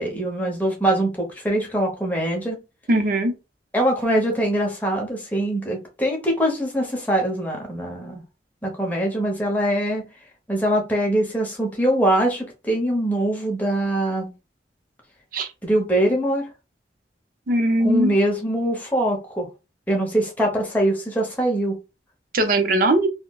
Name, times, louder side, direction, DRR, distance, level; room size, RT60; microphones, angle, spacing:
voice 1, 0.0-2.6 3.7-8.2 8.6-10.0 10.5-14.3 15.6-16.4 17.8-19.5 19.9-21.7, right 1 dB, 10° left, 0.9 m, -23 dB
voice 2, 2.9-3.3 15.3-15.5 17.5-18.1 22.3-23.1, right 1 dB, 55° right, 0.6 m, -19 dB
3.8 x 2.1 x 2.3 m
head